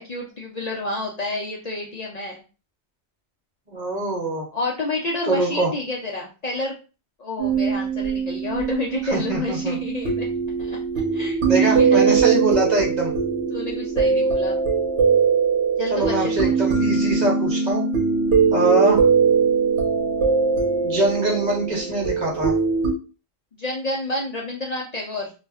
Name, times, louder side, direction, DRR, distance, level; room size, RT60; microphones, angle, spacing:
voice 1, 0.0-2.4 4.5-6.8 7.2-10.3 10.6-10.8 11.1-12.1 13.5-14.6 15.8-16.5 23.6-25.3, left 2 dB, 50° left, -2 dB, 0.5 m, -29 dB
voice 2, 3.7-4.5 5.3-5.7 9.1-9.8 11.4-13.1 15.9-17.8 18.5-19.1 20.8-22.5, right 2 dB, 45° right, -1 dB, 0.8 m, -23 dB
sound 1, 7.4-22.9, right 5 dB, 90° right, 1.0 m, -21 dB
2.4 x 2.1 x 3.4 m, 0.33 s
omnidirectional pair, 1.1 m